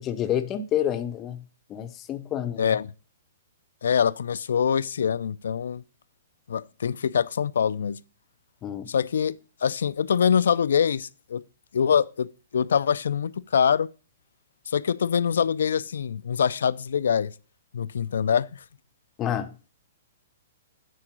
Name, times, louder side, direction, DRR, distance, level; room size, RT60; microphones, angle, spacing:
voice 1, 0.0-1.4 1.7-2.8 8.6-8.9 19.2-19.5, left 10 dB, 20° left, 0.6 m, -28 dB
voice 2, 2.6-2.9 3.8-5.8 6.5-8.0 8.9-9.4 9.6-11.4 11.7-13.9 14.7-17.3 17.7-18.6, left 7 dB, 80° left, 0.4 m, -24 dB
9.0 x 3.8 x 5.9 m
hypercardioid pair, 155°, 0 cm